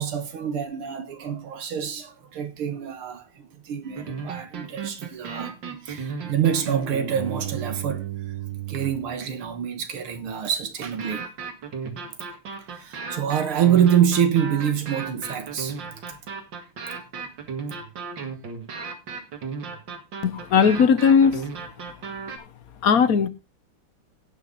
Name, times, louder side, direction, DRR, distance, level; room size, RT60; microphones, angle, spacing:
voice 1, 0.0-5.5 5.8-8.1 8.7-11.3 12.7-15.9, right 9 dB, 75° right, 2.2 m, -26 dB
sound 1, 3.8-9.1 11.0-22.4, right 6 dB, 55° right, 2.5 m, -34 dB
voice 2, 20.2-21.4 22.8-23.3, left 6 dB, 55° left, 1.1 m, -18 dB
17.5 x 6.4 x 4.0 m
omnidirectional pair, 2.4 m